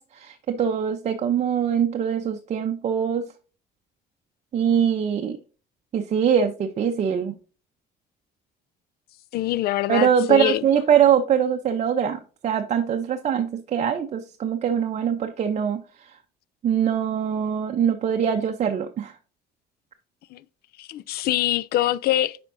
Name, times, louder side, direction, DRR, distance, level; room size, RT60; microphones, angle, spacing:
voice 1, 0.0-3.2 4.5-5.4 5.9-7.3 9.9-16.1 16.6-19.2, right 8 dB, 40° right, 0.6 m, -23 dB
voice 2, 9.3-10.7 20.3-20.4 20.8-22.4, left 14 dB, 65° left, 0.4 m, -24 dB
8.1 x 5.2 x 2.6 m
cardioid pair, 110°, 17 cm